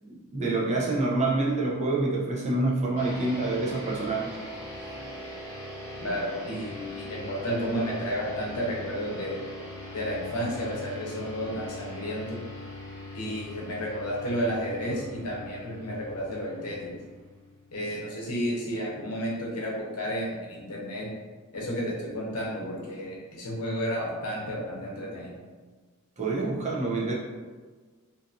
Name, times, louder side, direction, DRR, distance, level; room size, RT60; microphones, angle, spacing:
voice 1, 0.0-4.3 26.2-27.1, right 2 dB, 30° right, -3 dB, 0.5 m, -27 dB
sound 1, 3.0-17.8, left 1 dB, 10° left, 0.9 m, -41 dB
voice 2, 6.0-9.4 9.9-12.4 13.1-17.0 17.7-21.1 21.5-25.3, equal, 75° left, -3 dB, 0.7 m, -32 dB
2.5 x 2.4 x 2.6 m, 1.4 s
head